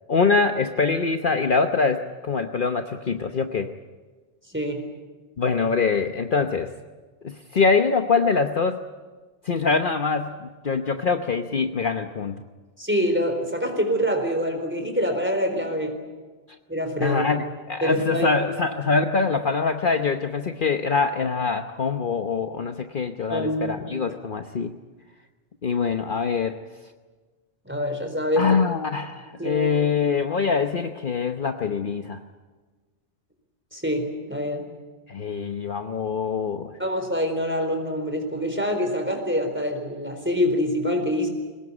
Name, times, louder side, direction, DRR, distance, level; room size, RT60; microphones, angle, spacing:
voice 1, 0.1-3.7 5.4-6.7 7.2-8.8 9.4-12.4 17.0-24.7 25.6-26.6 28.4-32.2 35.1-36.8, left 5 dB, 50° left, 6 dB, 1.1 m, -24 dB
voice 2, 4.5-4.9 12.8-16.0 16.7-17.2 17.8-18.4 23.3-23.9 27.6-28.7 29.4-29.8 33.7-34.7 36.8-41.3, equal, 10° right, 4 dB, 4.2 m, -25 dB
23.0 x 19.5 x 9.8 m, 1.3 s
omnidirectional pair, 1.2 m